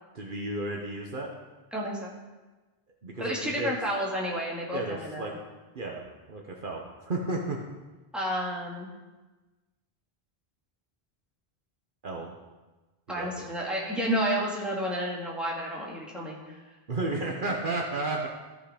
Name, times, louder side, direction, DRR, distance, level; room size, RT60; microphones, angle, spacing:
voice 1, 0.1-1.3 3.0-3.7 4.7-5.3 5.7-6.0 6.3-7.6 12.0-12.3 13.1-13.5 16.9-18.3, right 2 dB, 55° right, 0 dB, 1.2 m, -32 dB
voice 2, 1.7-2.1 3.2-5.4 8.1-8.9 13.1-16.6, equal, ahead, -5 dB, 2.2 m, -31 dB
14.5 x 5.6 x 5.0 m, 1.2 s
omnidirectional pair, 1.0 m